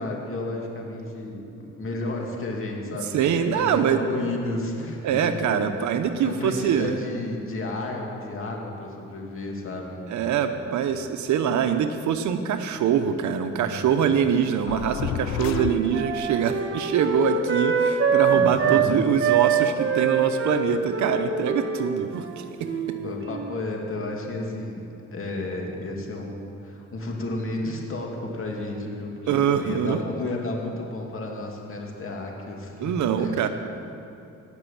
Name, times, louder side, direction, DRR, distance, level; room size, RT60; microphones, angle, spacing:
voice 1, 0.0-5.9 6.2-10.6 13.5-13.8 18.3-19.0 23.0-33.4, left 2 dB, 45° left, 0 dB, 2.5 m, -32 dB
voice 2, 3.1-4.0 5.0-7.0 10.1-22.4 29.3-30.0 32.8-33.5, right 8 dB, 70° right, 8 dB, 0.8 m, -24 dB
sound 1, 14.7-16.4, left 11 dB, 65° left, 0.5 m, -31 dB
Wind instrument woodwind instrument, 14.9-18.9 19.2-23.7, right 6 dB, 40° right, 1.3 m, -25 dB
18.0 x 6.3 x 7.2 m, 2.7 s
cardioid pair, 90°, 30 cm